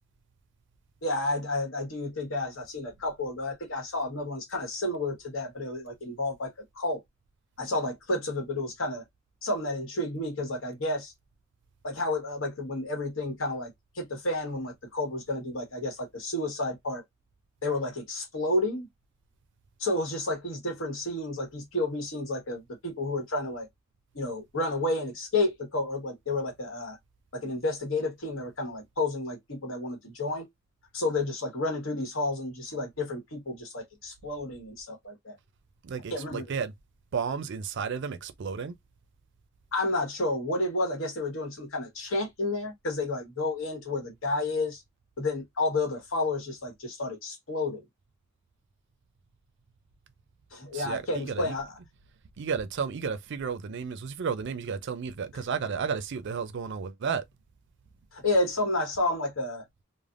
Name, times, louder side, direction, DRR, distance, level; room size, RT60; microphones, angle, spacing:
voice 1, 1.0-7.0 7.6-9.0 9.4-11.1 11.8-17.0 17.6-18.9 19.8-23.7 24.1-27.0 27.3-30.4 30.9-35.4 36.1-36.4 39.7-44.8 45.2-47.8 50.5-51.8 58.1-59.6, left 2 dB, 70° left, 1.2 m, -31 dB
voice 2, 35.8-36.7 37.1-38.7 50.7-51.5 52.4-57.2, right 6 dB, 60° right, 0.4 m, -32 dB
3.3 x 2.1 x 2.4 m
head